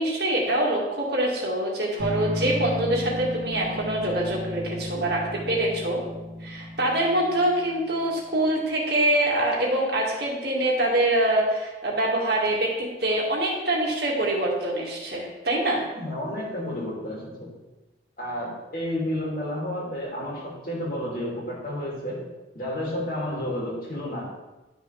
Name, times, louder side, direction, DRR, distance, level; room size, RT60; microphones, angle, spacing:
voice 1, 0.0-6.0 6.4-15.8, right 1 dB, 60° right, -2 dB, 2.0 m, -25 dB
sound 1, 2.0-8.0, equal, 85° right, 2.1 m, -34 dB
voice 2, 15.9-17.5 18.2-24.3, left 1 dB, 50° left, -4 dB, 2.6 m, -31 dB
11.5 x 5.8 x 3.4 m, 1.1 s
head